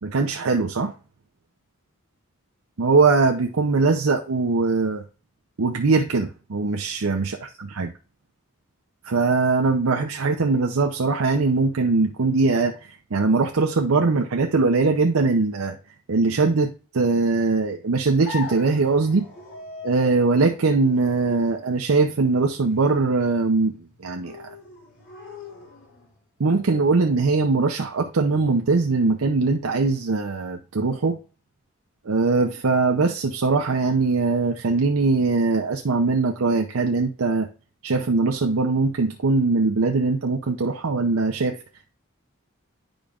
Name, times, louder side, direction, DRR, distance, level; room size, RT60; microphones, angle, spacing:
voice 1, 0.0-0.9 2.8-5.0 5.6-7.9 9.0-12.8 13.1-15.8 16.1-19.2 19.8-23.7 24.0-24.3 26.4-31.2 32.1-37.5 37.8-41.6, right 3 dB, 80° right, 0.6 m, -21 dB
sound 1, 18.2-26.2, left 3 dB, 60° left, 4.2 m, -41 dB
10.5 x 5.0 x 2.4 m
head